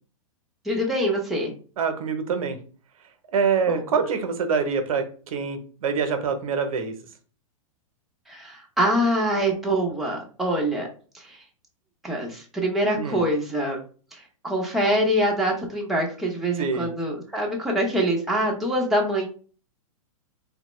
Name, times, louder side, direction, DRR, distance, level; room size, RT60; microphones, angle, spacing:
voice 1, 0.6-1.5 3.7-3.8 8.3-10.9 11.1-11.4 12.0-13.8 14.1-19.3, equal, ahead, -2 dB, 0.7 m, -24 dB
voice 2, 1.8-2.6 3.3-6.9 13.0-13.2 16.6-16.9, right 5 dB, 75° right, 7 dB, 0.7 m, -25 dB
3.5 x 2.1 x 3.0 m, 0.39 s
hypercardioid pair, 135°, 18 cm